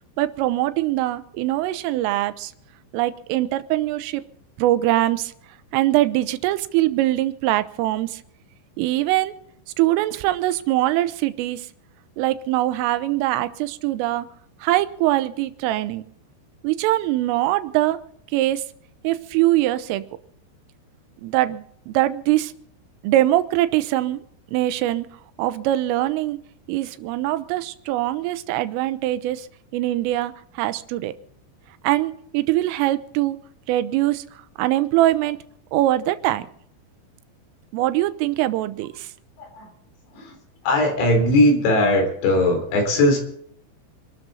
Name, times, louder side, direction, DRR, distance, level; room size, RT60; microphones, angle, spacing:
voice 1, 0.2-2.5 2.9-4.2 4.6-5.3 5.7-8.2 8.8-9.3 9.8-11.7 12.2-14.3 14.6-16.0 16.6-18.0 18.3-18.6 19.0-20.0 21.2-22.5 23.0-24.2 24.5-25.1 25.4-26.4 26.7-29.5 29.7-31.1 31.8-33.4 33.7-34.2 34.6-35.4 35.7-36.5 37.7-39.1, right 15 dB, 85° right, 12 dB, 3.4 m, -22 dB
voice 2, 39.4-39.7 40.1-40.4 40.6-43.2, left 1 dB, 65° left, 4 dB, 5.6 m, -19 dB
26.5 x 12.5 x 4.0 m, 0.67 s
omnidirectional pair, 5.8 m